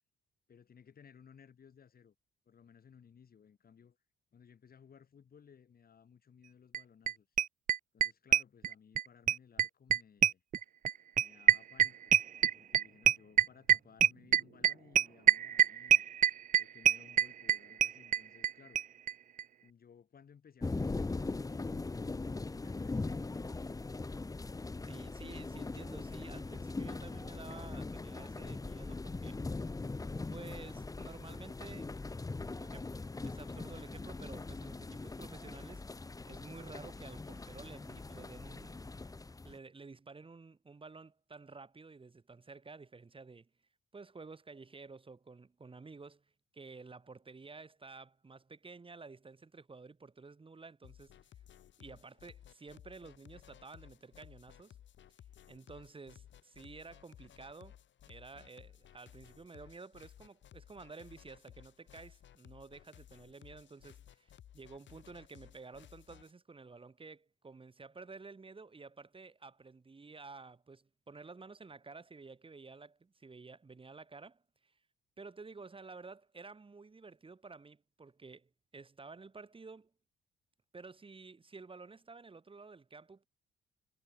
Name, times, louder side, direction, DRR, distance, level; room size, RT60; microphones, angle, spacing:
voice 1, 0.5-2.1 2.4-4.0 4.3-7.3 7.9-10.4 11.2-16.0 16.5-18.8 19.6-23.5, left 7 dB, 50° left, 4.9 m, -60 dB
sound 1, 6.7-6.8 7.1-7.2 7.4-9.0 9.3-18.5 18.8-18.9 19.1-19.2 19.4-19.5, right 10 dB, 40° right, 0.4 m, -25 dB
sound 2, 20.6-39.6, left 3 dB, 15° left, 1.1 m, -41 dB
voice 2, 24.8-29.4 30.3-31.9 32.6-35.8 36.3-38.8 39.4-43.5 43.9-46.2 46.5-51.2 51.8-54.8 55.5-57.8 58.1-74.7 75.2-79.9 80.7-83.3, right 4 dB, 25° right, 3.0 m, -52 dB
sound 3, 50.8-66.3, left 10 dB, 65° left, 4.6 m, -58 dB
cardioid pair, 90°, 20 cm